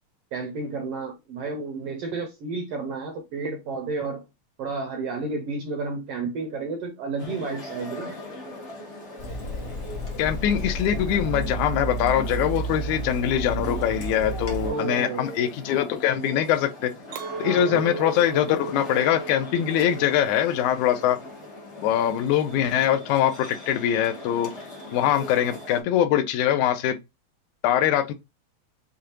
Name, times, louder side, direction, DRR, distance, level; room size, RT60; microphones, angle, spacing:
voice 1, 0.3-4.2 4.6-8.2 14.6-15.5 17.4-17.8, right 3 dB, 70° right, 1.5 m, -31 dB
sound 1, 7.2-25.8, left 1 dB, 65° left, 0.6 m, -41 dB
Water tap faucet / Sink (filling or washing), 9.2-14.7, right 1 dB, 45° left, 1.2 m, -31 dB
voice 2, 10.2-16.9 17.4-21.2 21.8-24.5 24.9-27.0 27.6-28.1, left 10 dB, 90° left, 2.0 m, -23 dB
Chink clink, 17.1-22.5, right 5 dB, 90° right, 2.2 m, -37 dB
6.6 x 2.4 x 2.9 m
omnidirectional pair, 3.4 m